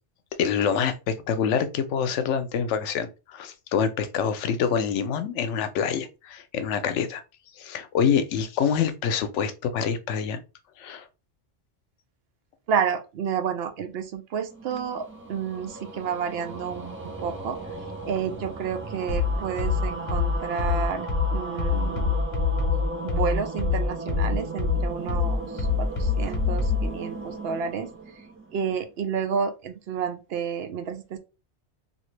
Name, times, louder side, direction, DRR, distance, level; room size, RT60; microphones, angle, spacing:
voice 1, 0.4-7.2 7.6-10.4 10.8-11.0, left 7 dB, 85° left, 0.9 m, -26 dB
voice 2, 12.7-17.6 18.1-21.1 21.3-22.2 23.0-27.9 28.5-31.2, right 7 dB, 65° right, 0.7 m, -30 dB
sound 1, 14.4-28.9, right 3 dB, 20° right, 0.3 m, -37 dB
sound 2, 19.1-26.9, left 5 dB, 45° left, 0.8 m, -25 dB
2.9 x 2.5 x 3.1 m
omnidirectional pair, 1.2 m